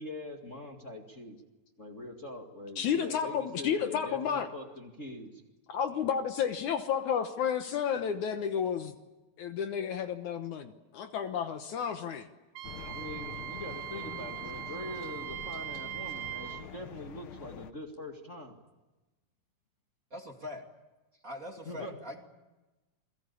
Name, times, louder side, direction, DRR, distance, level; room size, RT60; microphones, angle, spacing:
voice 1, 0.0-1.4 1.8-5.4 12.9-18.6 21.7-21.9, left 1 dB, 25° left, 2 dB, 1.9 m, -43 dB
voice 2, 2.8-4.5 5.7-8.9 9.4-12.3, left 7 dB, 65° left, 7 dB, 2.4 m, -31 dB
sound 1, 12.6-17.7, left 8 dB, 80° left, 1.1 m, -46 dB
Wind instrument woodwind instrument, 12.6-16.7, right 16 dB, 70° right, 2.7 m, -40 dB
voice 3, 20.1-20.6 21.2-22.2, left 1 dB, 25° right, 2 dB, 2.5 m, -42 dB
28.0 x 22.5 x 8.5 m, 1.1 s
omnidirectional pair, 4.0 m